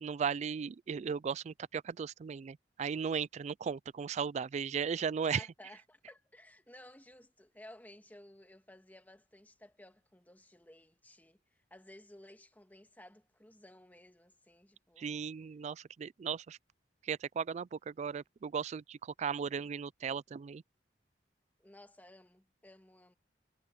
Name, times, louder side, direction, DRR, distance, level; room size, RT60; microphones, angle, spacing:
voice 1, 0.0-5.5 15.0-16.6 17.0-20.6, right 6 dB, 40° right, 0.3 m, -36 dB
voice 2, 5.3-15.2 19.4-19.6 21.6-23.1, left 1 dB, 10° left, 1.9 m, -56 dB
head